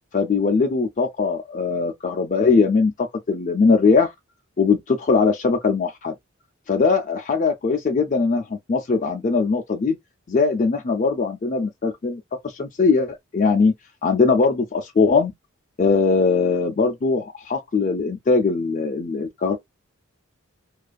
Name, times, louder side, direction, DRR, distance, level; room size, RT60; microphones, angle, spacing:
voice 1, 0.1-4.1 4.6-6.2 6.7-10.0 10.3-13.7 14.0-15.3 15.8-19.6, left 4 dB, 35° left, 0.4 m, -20 dB
2.5 x 2.3 x 2.2 m
head